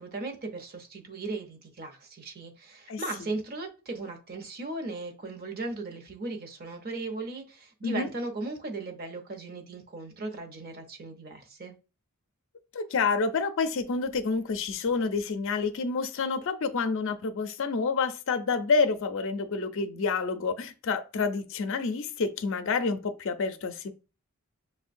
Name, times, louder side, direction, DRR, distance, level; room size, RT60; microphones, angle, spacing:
voice 1, 0.0-11.8, right 2 dB, 45° right, 0.7 m, -37 dB
voice 2, 2.9-3.3 7.8-8.1 12.7-23.9, left 4 dB, 65° left, 0.5 m, -28 dB
6.1 x 2.2 x 2.5 m
head